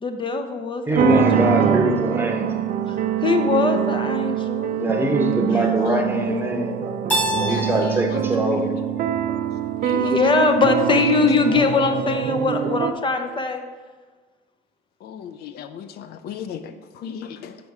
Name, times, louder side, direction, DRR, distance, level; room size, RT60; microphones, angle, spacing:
voice 1, 0.0-1.5 2.9-4.8 9.9-13.6, left 4 dB, 30° left, 7 dB, 0.6 m, -22 dB
voice 2, 0.9-2.5 4.7-6.9 7.4-8.7, right 1 dB, 10° right, 3 dB, 0.9 m, -22 dB
sound 1, 0.9-12.9, right 9 dB, 55° right, 0.5 m, -24 dB
voice 3, 5.6-6.0 7.5-8.2 8.5-8.8 9.8-10.2 15.0-17.6, left 8 dB, 70° left, 10 dB, 0.5 m, -35 dB
Keyboard (musical), 7.1-9.9, right 1 dB, 10° left, 1.2 m, -29 dB
5.9 x 5.3 x 4.7 m, 1.4 s
cardioid pair, 110°, 17 cm